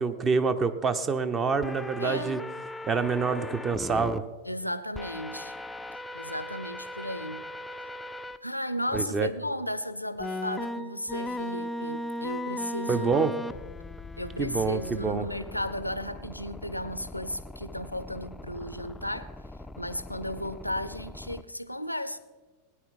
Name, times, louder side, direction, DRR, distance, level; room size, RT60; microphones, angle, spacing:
voice 1, 0.0-2.4 2.9-4.2 8.9-9.3 12.9-13.3 14.4-15.3, right 5 dB, 20° right, 0.8 m, -26 dB
sound 1, 1.6-4.2 4.9-8.4 8.9-9.0 10.2-21.4, left 1 dB, 10° left, 0.4 m, -38 dB
voice 2, 2.0-2.4 4.5-5.5 6.1-7.5 8.4-13.4 14.2-19.3 19.8-22.2, left 1 dB, 85° left, 0.6 m, -34 dB
18.0 x 9.9 x 4.2 m
figure-of-eight pair, 90°, 0 cm